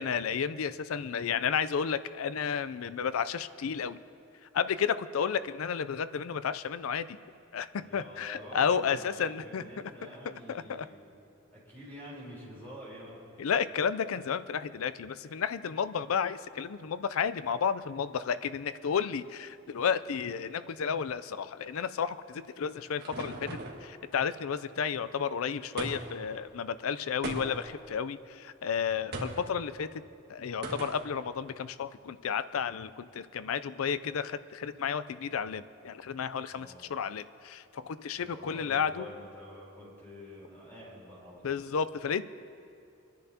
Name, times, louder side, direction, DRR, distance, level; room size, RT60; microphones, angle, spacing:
voice 1, 0.0-4.0 4.5-7.2 7.5-9.6 10.5-10.9 13.4-30.0 30.3-39.1 41.4-42.2, left 7 dB, 90° left, 14 dB, 0.4 m, -32 dB
voice 2, 7.8-11.0 11.5-13.2 36.5-36.9 38.2-41.6, equal, 10° left, -7 dB, 3.7 m, -47 dB
sound 1, 22.3-23.9 25.8-26.3 27.2-27.8 29.1-29.5 30.6-31.1, right 2 dB, 55° right, 1.5 m, -38 dB
28.5 x 10.5 x 2.8 m, 2.6 s
head